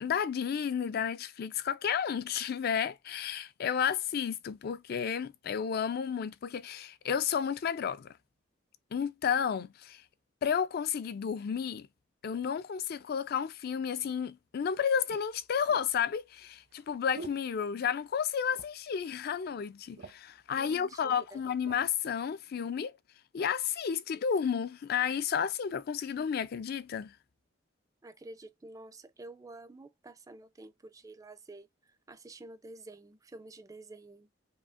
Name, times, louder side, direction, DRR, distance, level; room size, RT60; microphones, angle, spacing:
voice 1, 0.0-8.1 8.9-10.0 10.4-11.9 12.2-22.9 23.3-27.1, left 7 dB, 55° left, 0.4 m, -32 dB
sound 1, 14.1-14.2 15.1-18.2 18.5-19.0 19.3-19.4 19.7-20.4 21.1-21.9 22.5-22.7, right 3 dB, 70° right, 0.7 m, -50 dB
voice 2, 20.6-21.4 28.0-34.3, right 2 dB, 20° right, 0.4 m, -50 dB
5.0 x 2.9 x 2.4 m
head